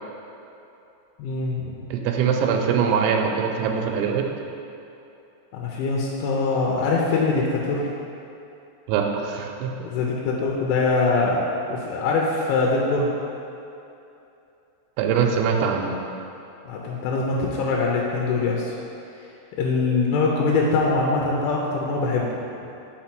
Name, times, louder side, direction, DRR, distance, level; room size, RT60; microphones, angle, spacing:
voice 1, 1.2-1.8 5.5-7.9 9.8-11.5 11.7-13.1 16.7-18.7 19.6-22.3, left 3 dB, 90° left, -2 dB, 3.1 m, -23 dB
voice 2, 1.9-4.3 8.9-9.7 15.0-15.9, right 6 dB, 85° right, 2 dB, 2.9 m, -22 dB
5.8 x 5.2 x 4.4 m, 2.8 s
omnidirectional pair, 5.3 m